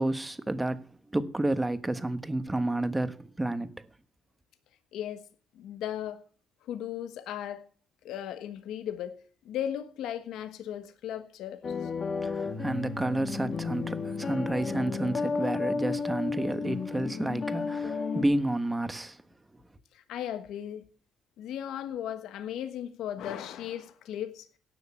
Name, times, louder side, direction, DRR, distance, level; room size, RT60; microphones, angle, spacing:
voice 1, 0.0-3.7 12.2-19.2, right 1 dB, 15° right, 1.3 m, -30 dB
voice 2, 4.9-5.2 5.5-6.2 6.6-7.6 8.0-9.1 9.4-11.9 19.9-20.8 21.4-24.5, left 10 dB, 85° left, 1.3 m, -36 dB
sound 1, 11.6-18.2, left 5 dB, 50° left, 2.5 m, -32 dB
17.0 x 6.5 x 8.4 m
cardioid pair, 90°, 0 cm